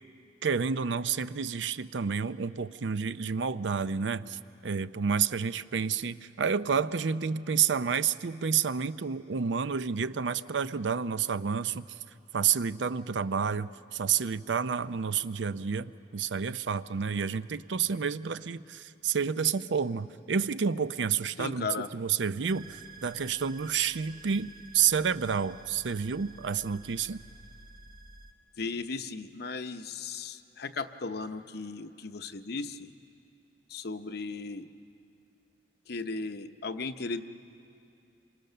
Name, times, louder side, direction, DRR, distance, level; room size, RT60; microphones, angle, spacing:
voice 1, 0.4-11.8 12.3-27.2, right 6 dB, 85° right, 14 dB, 0.6 m, -30 dB
voice 2, 21.4-21.9 28.6-32.9 33.7-34.6 35.9-37.2, left 4 dB, 60° left, 9 dB, 0.8 m, -36 dB
sound 1, 22.5-28.3, right 3 dB, 55° right, 1.1 m, -51 dB
27.0 x 24.5 x 6.7 m, 2.6 s
head